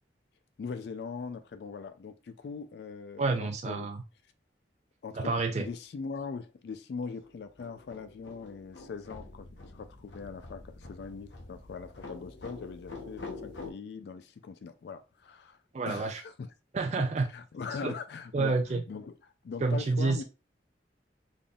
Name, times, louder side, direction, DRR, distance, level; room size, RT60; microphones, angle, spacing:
voice 1, 0.6-3.9 5.0-15.6 15.9-16.5 17.3-19.1 19.4-20.2, left 5 dB, 65° left, 0.3 m, -41 dB
voice 2, 3.2-4.0 5.1-5.6 15.7-16.2 16.7-17.3 17.8-17.9 18.3-18.8 19.6-20.2, right 3 dB, 40° right, 0.4 m, -29 dB
sound 1, 7.2-13.7, left 3 dB, 90° left, 0.9 m, -46 dB
3.8 x 3.5 x 2.3 m
head